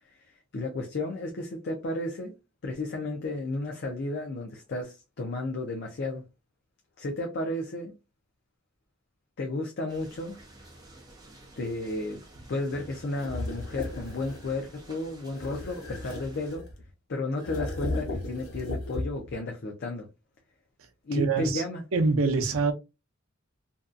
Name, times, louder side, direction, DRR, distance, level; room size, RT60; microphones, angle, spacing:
voice 1, 0.2-2.3 2.6-6.2 7.0-7.9 9.4-10.4 11.6-12.2 12.5-16.6 17.1-20.1 21.0-21.8, left 2 dB, 50° left, 0.5 m, -33 dB
sound 1, 9.9-16.6, right 1 dB, 20° right, 0.6 m, -51 dB
sound 2, 13.2-14.5 15.3-16.9 17.4-19.4, left 2 dB, 85° left, 0.8 m, -35 dB
voice 2, 21.1-21.6 21.9-22.7, right 4 dB, 70° right, 0.5 m, -24 dB
2.6 x 2.2 x 2.4 m
head